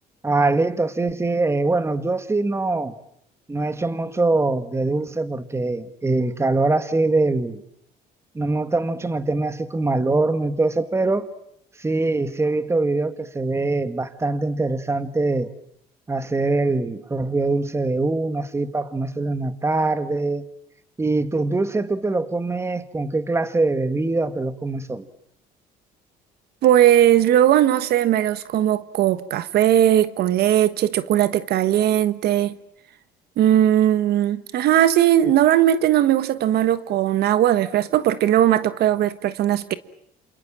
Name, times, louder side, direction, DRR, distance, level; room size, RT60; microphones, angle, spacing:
voice 1, 0.2-3.0 3.5-7.6 8.4-11.3 11.8-15.5 16.1-20.4 21.0-25.1, right 2 dB, 15° right, 1.9 m, -23 dB
voice 2, 26.6-32.6 33.4-39.7, right 11 dB, 70° right, 1.4 m, -18 dB
28.5 x 28.0 x 7.5 m
cardioid pair, 110°, 17 cm